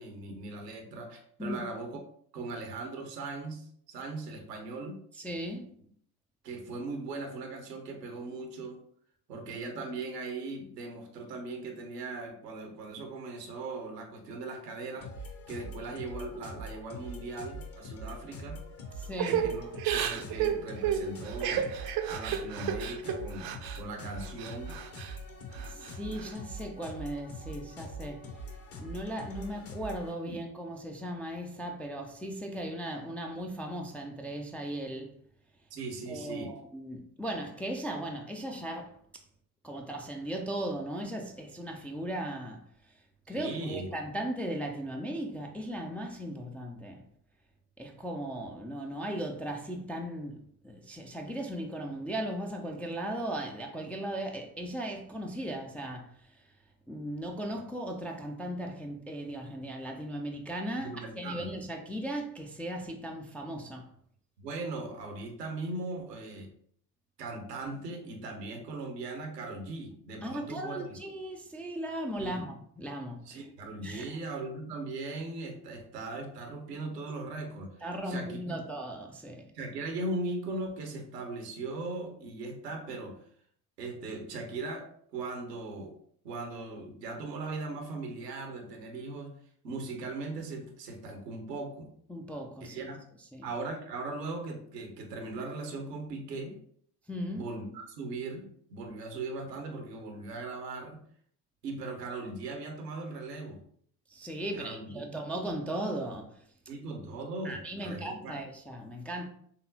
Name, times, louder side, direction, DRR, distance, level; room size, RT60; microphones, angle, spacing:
voice 1, 0.0-2.0 2.3-5.0 6.4-8.8 9.3-18.6 19.4-19.7 19.9-21.7 22.1-23.5 23.8-24.8 30.3-30.4 35.7-36.5 43.3-43.9 60.8-61.5 64.4-66.5 67.2-71.0 72.2-72.4 73.2-77.8 78.1-78.6 79.5-83.2 83.8-85.9 86.2-89.4 89.6-91.9 92.6-93.0 93.4-96.6 97.3-101.0 101.6-103.6 104.5-105.2 106.7-108.4, right 3 dB, 85° right, 0.9 m, -39 dB
voice 2, 5.1-5.7 19.0-19.5 25.6-28.3 28.8-35.2 36.1-39.2 39.6-43.0 43.3-47.0 47.8-56.5 56.9-63.9 70.2-73.4 73.8-74.1 77.8-79.5 92.1-92.8 93.3-93.5 97.1-97.5 104.1-106.5 107.4-109.3, right 1 dB, 5° left, 0.3 m, -37 dB
sound 1, 15.0-30.1, equal, 30° left, 0.8 m, -43 dB
Crying sobbing / Breathing, 19.2-23.8 24.2-25.1 25.5-26.3, right 9 dB, 50° right, 0.6 m, -32 dB
4.1 x 3.5 x 2.7 m
figure-of-eight pair, 60°, 47 cm